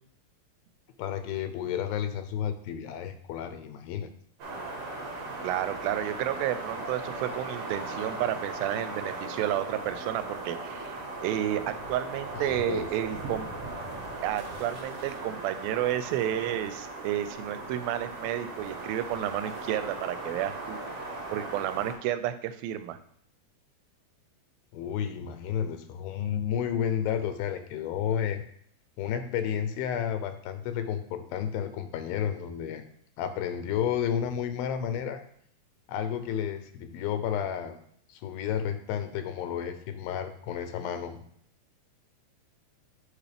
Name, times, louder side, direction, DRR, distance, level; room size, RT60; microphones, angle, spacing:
voice 1, 1.0-4.1 12.3-12.9 24.7-28.4 29.0-32.8 33.2-35.2 35.9-37.8 38.1-41.2, left 9 dB, 90° left, 9 dB, 2.5 m, -31 dB
sound 1, 4.4-21.9, right 2 dB, 60° right, 2.6 m, -38 dB
voice 2, 5.4-13.5 14.2-20.8 21.3-23.0, right 12 dB, 90° right, 12 dB, 2.4 m, -31 dB
8.3 x 5.0 x 3.4 m, 0.65 s
omnidirectional pair, 4.1 m